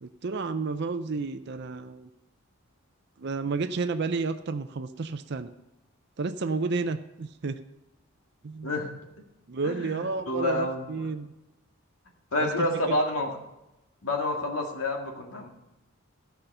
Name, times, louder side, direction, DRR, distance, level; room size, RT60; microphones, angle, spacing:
voice 1, 0.0-2.1 3.2-5.5 6.2-7.6 8.4-8.8 9.5-11.3 12.4-13.0, right 4 dB, 50° right, 10 dB, 0.5 m, -31 dB
voice 2, 9.6-11.0 12.3-13.3 14.0-15.5, left 1 dB, 75° left, 2 dB, 1.9 m, -29 dB
14.0 x 5.7 x 6.6 m, 0.96 s
head